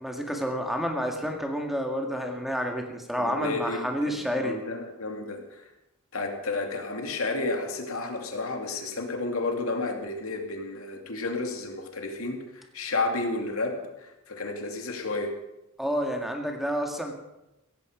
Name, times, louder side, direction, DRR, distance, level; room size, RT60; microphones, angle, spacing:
voice 1, 0.0-4.5 15.8-17.1, equal, ahead, 2 dB, 2.0 m, -29 dB
voice 2, 3.1-5.7 6.1-15.4, left 3 dB, 80° left, 3 dB, 2.6 m, -32 dB
16.5 x 15.0 x 5.1 m, 0.91 s
head